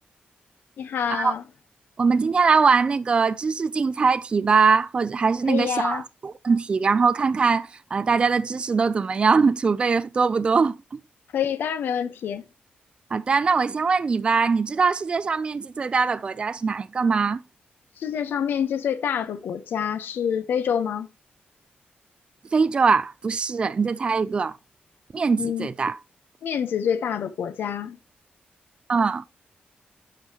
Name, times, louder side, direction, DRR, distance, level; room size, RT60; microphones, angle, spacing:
voice 1, 0.8-1.4 5.5-6.0 11.3-12.5 18.0-21.1 25.4-25.7 26.4-28.0, left 8 dB, 90° left, 0.9 m, -27 dB
voice 2, 2.0-11.0 13.1-17.4 22.5-24.6 25.1-26.0 28.9-29.2, right 5 dB, 30° right, 0.4 m, -22 dB
11.5 x 5.4 x 2.9 m
wide cardioid pair, 160°, 3 cm